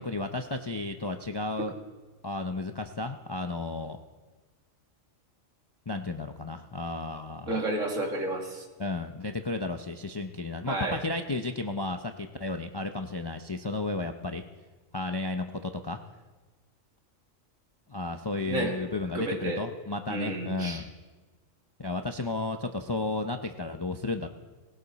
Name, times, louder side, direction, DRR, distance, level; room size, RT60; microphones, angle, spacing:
voice 1, 0.0-1.7 2.2-4.0 5.9-7.5 8.8-14.4 14.9-16.0 17.9-20.9 21.8-24.3, left 2 dB, 35° left, 6 dB, 0.4 m, -33 dB
voice 2, 7.5-8.7 10.7-11.0 18.5-18.8 19.1-19.6 20.1-20.8, right 2 dB, 75° right, 1 dB, 2.5 m, -31 dB
19.0 x 16.5 x 4.1 m, 1.3 s
omnidirectional pair, 1.4 m